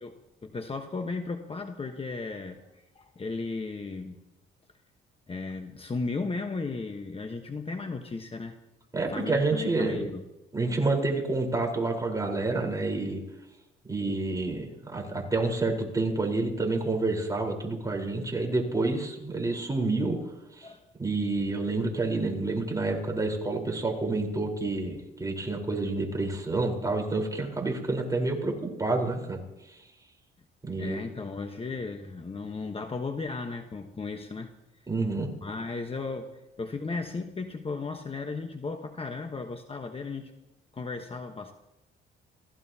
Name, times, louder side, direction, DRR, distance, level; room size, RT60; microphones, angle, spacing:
voice 1, 0.0-4.2 5.3-8.6 9.1-10.2 20.6-20.8 30.8-34.5 35.4-40.3 40.7-41.5, left 3 dB, 30° left, 5 dB, 1.2 m, -35 dB
voice 2, 8.9-10.1 10.5-13.2 13.9-20.2 20.6-20.7 21.0-29.4 30.6-31.0 34.9-35.3, right 3 dB, 15° right, 0 dB, 4.2 m, -28 dB
29.0 x 15.5 x 2.9 m, 0.93 s
cardioid pair, 90°, 20 cm